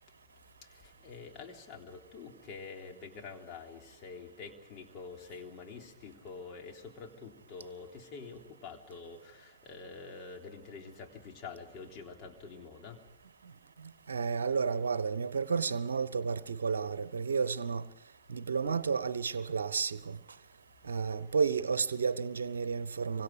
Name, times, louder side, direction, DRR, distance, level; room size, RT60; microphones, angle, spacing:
voice 1, 0.6-13.0, left 4 dB, 35° left, 3.5 m, -47 dB
voice 2, 14.1-17.8 18.3-20.2 20.8-23.2, right 5 dB, 70° right, 0.9 m, -31 dB
25.5 x 24.5 x 5.0 m
figure-of-eight pair, 90°, 0 cm